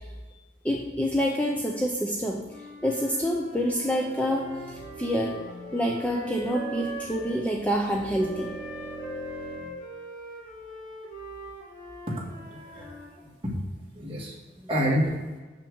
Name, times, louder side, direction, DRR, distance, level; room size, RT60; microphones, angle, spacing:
voice 1, 0.6-2.4 2.8-5.4 5.7-8.5 14.0-14.1 14.6-14.7, equal, 5° left, -1 dB, 0.6 m, -27 dB
Wind instrument woodwind instrument, 2.4-7.5 8.2-13.1, right 1 dB, 45° left, 2.7 m, -42 dB
sound 1, 3.4-9.7, right 2 dB, 10° right, 2.8 m, -43 dB
voice 2, 12.1-12.9 13.2-13.6 13.9-14.3 14.7-15.1, equal, 30° right, -4 dB, 2.0 m, -29 dB
6.7 x 6.1 x 6.3 m, 1.3 s
head